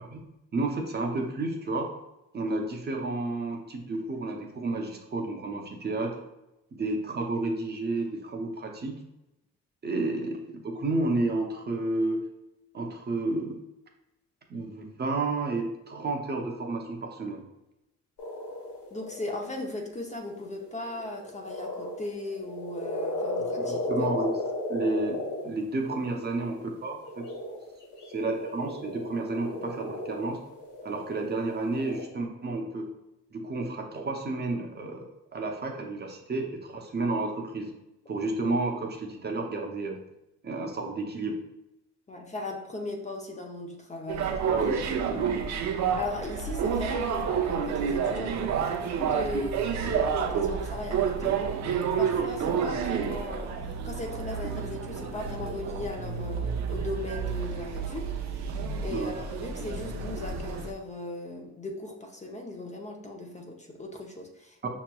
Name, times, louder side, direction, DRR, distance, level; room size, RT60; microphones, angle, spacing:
voice 1, 0.5-1.9 2.3-6.1 6.7-8.9 9.8-12.3 12.7-13.6 14.5-17.5 23.6-24.3 24.7-27.3 28.1-30.4 30.8-32.9 33.3-35.0 35.3-37.7 38.1-40.0 40.4-41.4 44.4-45.4 52.6-52.8 58.9-59.2 64.6-64.7, right 2 dB, 35° right, 2 dB, 0.7 m, -31 dB
sound 1, 18.2-19.4 20.3-32.0, left 2 dB, 80° left, 1.1 m, -34 dB
voice 2, 18.9-24.1 42.1-44.4 46.0-53.6 53.8-64.7, left 2 dB, 25° left, 1 dB, 0.6 m, -38 dB
sound 2, 44.1-60.7, right 6 dB, 65° right, 0.5 m, -30 dB
5.7 x 3.0 x 2.3 m, 0.92 s
cardioid pair, 90°, 30 cm